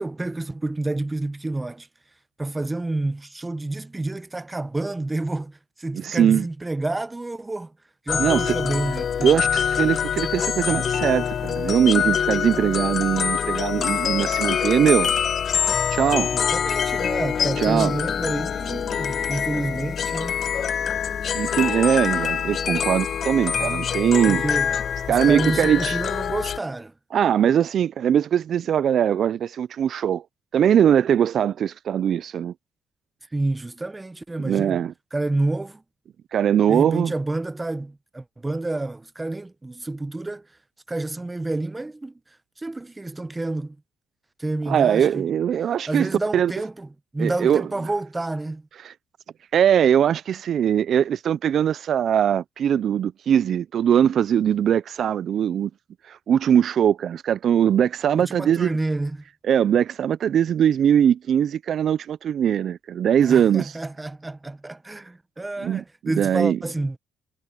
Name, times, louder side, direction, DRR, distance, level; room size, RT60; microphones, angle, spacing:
voice 1, 0.0-1.9 2.4-7.7 8.1-9.3 16.3-20.4 24.3-24.8 25.1-26.9 33.3-34.8 35.1-35.8 36.7-40.5 40.9-42.2 42.6-43.8 44.4-45.3 45.9-48.7 58.1-59.2 63.2-67.0, right 2 dB, 15° right, 0.8 m, -29 dB
voice 2, 5.9-6.4 8.2-8.5 9.2-15.1 15.9-16.3 17.6-17.9 21.3-24.4 25.1-26.0 27.1-30.2 30.5-32.5 34.4-34.9 36.3-37.1 44.7-46.5 47.2-47.6 48.8-48.9 49.5-55.7 56.1-58.8 59.5-63.8 65.6-65.8 66.2-66.6, right 9 dB, 60° right, 0.3 m, -21 dB
sound 1, 8.1-26.6, left 8 dB, 55° left, 1.2 m, -25 dB
cardioid pair, 90°, 0 cm